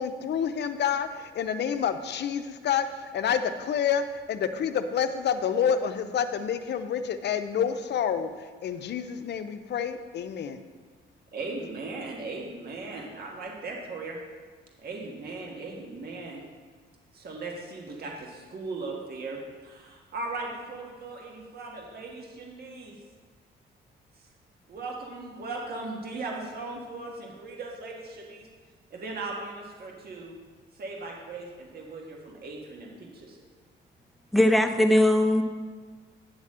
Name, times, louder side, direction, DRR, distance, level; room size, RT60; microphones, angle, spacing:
voice 1, 0.0-10.6, left 7 dB, 60° left, 10 dB, 0.7 m, -28 dB
voice 2, 11.3-14.2 14.8-16.4 17.1-23.0 24.7-28.5 28.9-30.3 30.7-33.4, right 3 dB, 50° right, -1 dB, 1.6 m, -38 dB
voice 3, 34.3-35.4, left 1 dB, ahead, 5 dB, 0.8 m, -20 dB
9.5 x 4.1 x 7.4 m, 1.5 s
cardioid pair, 90°, 20 cm